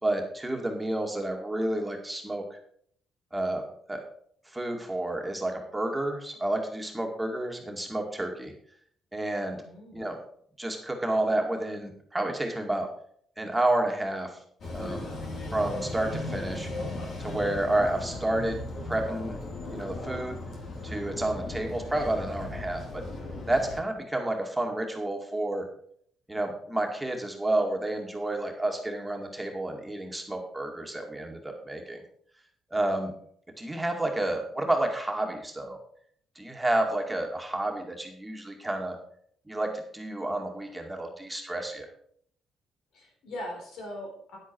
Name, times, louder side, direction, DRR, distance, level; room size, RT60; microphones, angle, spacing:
voice 1, 0.0-2.4 3.3-3.6 3.9-4.0 4.5-8.5 9.1-9.6 9.9-10.2 10.6-12.9 13.4-14.3 14.7-15.1 15.5-16.7 17.2-18.6 18.9-19.4 19.7-20.4 20.8-23.0 23.5-25.7 26.3-32.0 32.7-33.1 33.6-35.8 36.4-39.0 39.5-41.9, right 1 dB, 10° right, 2 dB, 2.2 m, -30 dB
voice 2, 9.6-10.1 42.9-44.4, left 1 dB, 80° left, 1 dB, 4.0 m, -40 dB
sound 1, 14.6-23.8, left 2 dB, 60° left, 3.0 m, -37 dB
10.0 x 8.3 x 4.7 m, 0.63 s
cardioid pair, 90°, 0 cm